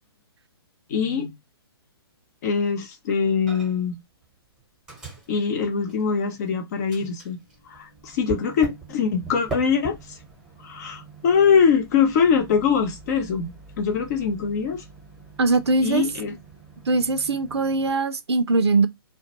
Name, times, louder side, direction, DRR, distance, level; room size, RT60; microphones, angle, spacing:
voice 1, 0.9-1.3 2.4-4.0 5.3-7.4 7.7-10.2 10.6-14.8 15.8-16.3, left 6 dB, 40° left, 0.7 m, -23 dB
Microwave oven, 3.5-4.0 4.2-6.5 6.9-17.9, right 4 dB, 5° right, 0.9 m, -41 dB
voice 2, 15.4-16.0 16.9-18.9, right 3 dB, 85° right, 0.4 m, -21 dB
2.2 x 2.1 x 2.8 m
hypercardioid pair, 135°, 13 cm